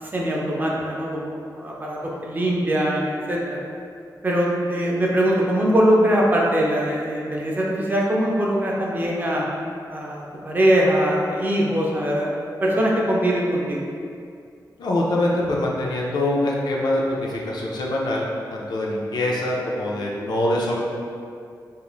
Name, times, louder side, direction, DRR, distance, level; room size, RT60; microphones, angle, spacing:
voice 1, 0.0-3.6 4.2-9.5 9.9-13.8, equal, 25° right, -3 dB, 0.3 m, -22 dB
voice 2, 14.8-20.8, left 1 dB, 70° left, -3 dB, 0.4 m, -24 dB
2.4 x 2.4 x 3.0 m, 2.3 s
wide cardioid pair, 175°, 7 cm